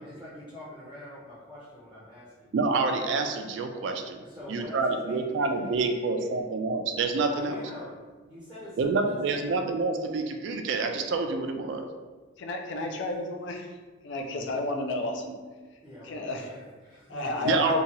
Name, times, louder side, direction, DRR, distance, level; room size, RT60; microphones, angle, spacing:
voice 1, 0.0-2.6 4.2-6.4 7.3-9.6 15.8-17.8, left 1 dB, 5° right, -9 dB, 0.5 m, -45 dB
voice 2, 2.5-4.2 4.5-7.5 8.8-11.8 15.3-15.4 17.4-17.8, right 3 dB, 65° right, 5 dB, 0.3 m, -27 dB
voice 3, 12.4-13.8 14.0-15.3 16.0-16.5 17.1-17.8, left 2 dB, 60° left, 3 dB, 0.4 m, -32 dB
2.7 x 2.3 x 2.8 m, 1.3 s
head